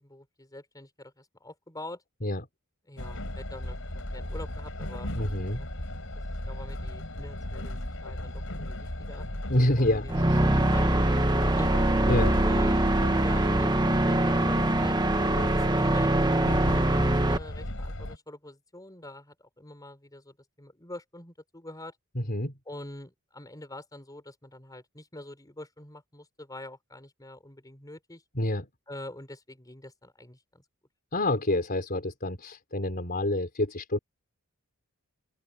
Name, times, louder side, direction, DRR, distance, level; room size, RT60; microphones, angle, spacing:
voice 1, 0.0-2.0 2.9-5.1 5.6-5.7 6.1-9.3 9.8-10.3 10.7-11.7 12.4-15.0 15.5-16.4 16.7-22.0 22.7-28.2 28.9-30.6, left 1 dB, 15° left, 5.5 m, -45 dB
Train, 3.0-18.2, left 1 dB, 65° left, 4.6 m, -36 dB
voice 2, 5.1-5.6 9.5-10.6 12.1-12.4 22.1-22.5 28.3-28.7 31.1-34.0, left 1 dB, 45° left, 4.2 m, -28 dB
sound 1, 10.1-17.4, right 1 dB, 20° right, 1.2 m, -23 dB
open air
head